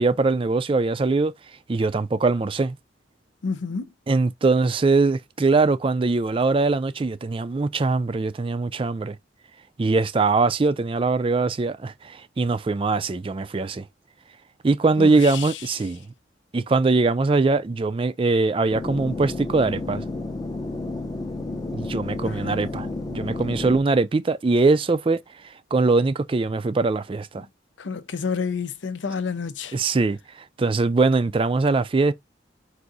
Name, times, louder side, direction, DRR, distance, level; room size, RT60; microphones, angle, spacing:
voice 1, 0.0-1.3 1.7-2.8 4.1-9.2 9.8-13.9 14.6-16.0 16.5-20.0 21.7-25.2 25.7-27.5 29.7-30.2 30.6-32.1, right 3 dB, 30° right, 0.4 m, -22 dB
voice 2, 3.4-3.9 15.0-15.6 22.2-22.7 27.4-27.5 27.8-29.8, left 5 dB, 80° left, 0.6 m, -30 dB
sound 1, 18.7-23.8, left 2 dB, 20° left, 0.6 m, -31 dB
4.7 x 2.6 x 3.9 m
head